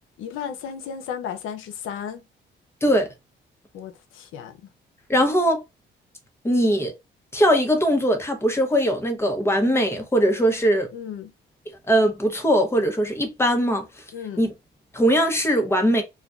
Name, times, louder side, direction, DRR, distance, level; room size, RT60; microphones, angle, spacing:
voice 1, 0.2-2.2 3.7-4.7 10.9-11.3 14.1-14.5, left 8 dB, 85° left, 0.6 m, -34 dB
voice 2, 5.1-5.6 6.4-6.9 7.3-10.9 11.9-13.8 14.4-14.5 14.9-16.0, equal, 10° left, 0.8 m, -20 dB
2.4 x 2.2 x 2.3 m
cardioid pair, 90°, 20 cm